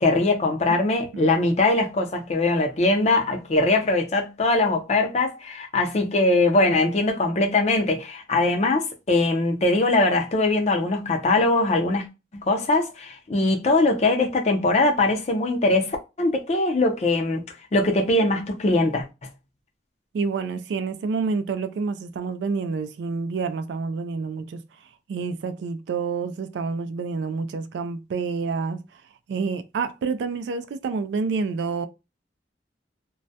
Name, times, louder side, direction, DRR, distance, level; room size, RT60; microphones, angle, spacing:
voice 1, 0.0-12.1 12.3-17.4 17.7-19.0, left 2 dB, 40° left, 0.5 m, -21 dB
voice 2, 20.1-24.6 25.1-28.8 29.3-31.9, right 4 dB, 75° right, 0.3 m, -28 dB
2.2 x 2.1 x 2.6 m
head